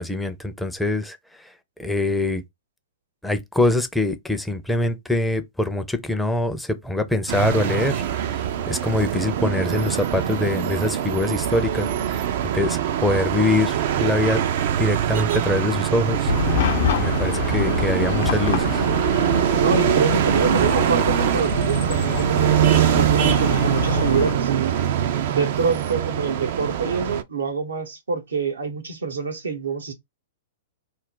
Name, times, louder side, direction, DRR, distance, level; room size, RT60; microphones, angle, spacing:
voice 1, 0.0-1.5 1.8-2.4 3.2-14.4 14.8-16.3 17.0-18.8, left 2 dB, 5° left, 0.5 m, -24 dB
sound 1, 7.3-27.2, right 10 dB, 60° right, 0.4 m, -23 dB
Chatter / Car passing by / Traffic noise roadway noise, 16.3-24.3, left 8 dB, 60° left, 0.5 m, -26 dB
voice 2, 19.6-24.7 25.3-29.9, right 5 dB, 85° right, 0.9 m, -26 dB
2.4 x 2.1 x 3.7 m
hypercardioid pair, 120°, 0 cm